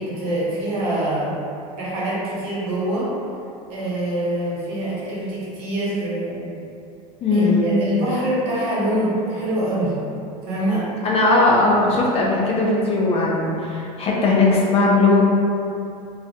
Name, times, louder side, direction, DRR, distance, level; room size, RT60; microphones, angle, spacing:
voice 1, 0.0-1.3 1.8-3.1 3.7-6.5 7.3-9.9 10.4-10.9, right 1 dB, 65° right, -8 dB, 1.0 m, -24 dB
voice 2, 7.2-7.8 11.0-15.2, left 2 dB, 30° left, -4 dB, 0.5 m, -18 dB
2.4 x 2.1 x 2.7 m, 2.6 s
hypercardioid pair, 95°, 20 cm